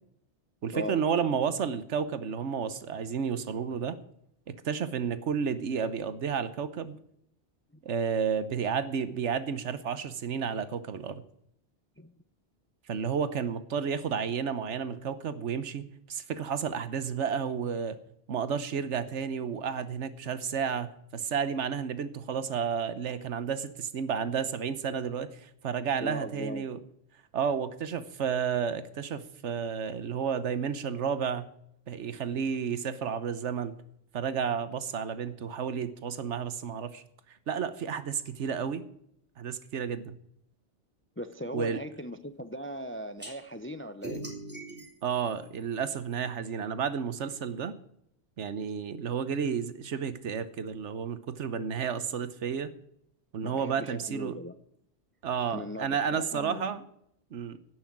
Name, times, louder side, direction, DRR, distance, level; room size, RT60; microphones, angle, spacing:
voice 1, 0.6-4.0 4.5-7.0 7.8-11.2 12.9-18.0 18.3-26.8 27.3-31.5 31.9-33.7 34.1-37.0 37.3-38.8 39.4-40.2 41.5-41.8 45.0-47.7 48.4-52.7 53.3-54.4 55.2-56.8 57.3-57.6, right 7 dB, 75° right, 1.2 m, -31 dB
voice 2, 26.0-26.7 41.2-44.3 53.4-54.5 55.5-56.7, equal, 15° left, 0.4 m, -38 dB
sound 1, 43.2-43.3 44.0-46.2, right 1 dB, 10° right, 3.4 m, -42 dB
16.5 x 6.3 x 8.6 m
omnidirectional pair, 1.2 m